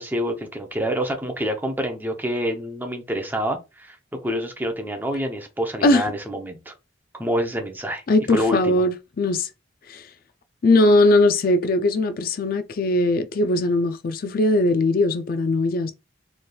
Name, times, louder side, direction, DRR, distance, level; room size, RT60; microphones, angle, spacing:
voice 1, 0.0-6.7 7.1-8.0 8.3-8.8, equal, 10° right, 0.7 m, -27 dB
voice 2, 8.1-9.5 9.9-10.1 10.6-15.9, left 2 dB, 50° left, 0.4 m, -20 dB
4.1 x 3.3 x 2.3 m
head